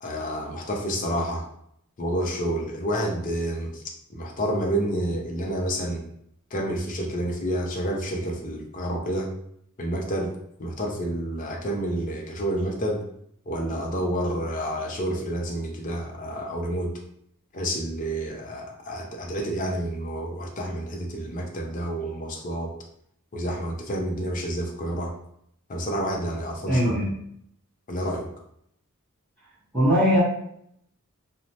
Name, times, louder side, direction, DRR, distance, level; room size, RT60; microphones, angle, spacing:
voice 1, 0.0-1.5 2.0-3.8 4.1-6.0 6.5-9.3 9.8-10.3 10.6-13.0 13.5-16.9 17.5-22.7 23.3-25.1 25.7-27.0 27.9-28.3, right 1 dB, 35° left, 1 dB, 0.5 m, -29 dB
voice 2, 26.7-27.1 29.7-30.2, equal, 5° left, -11 dB, 0.9 m, -20 dB
3.0 x 2.0 x 2.7 m, 0.70 s
head